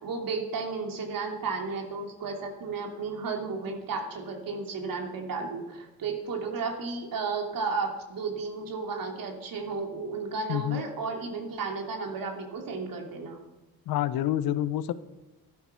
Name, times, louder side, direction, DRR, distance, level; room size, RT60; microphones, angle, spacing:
voice 1, 0.0-13.4, right 4 dB, 65° right, 3 dB, 3.0 m, -33 dB
voice 2, 10.5-10.8 13.9-14.9, left 13 dB, 75° left, 14 dB, 0.9 m, -27 dB
13.0 x 12.0 x 5.8 m, 1.0 s
cardioid pair, 90°, 37 cm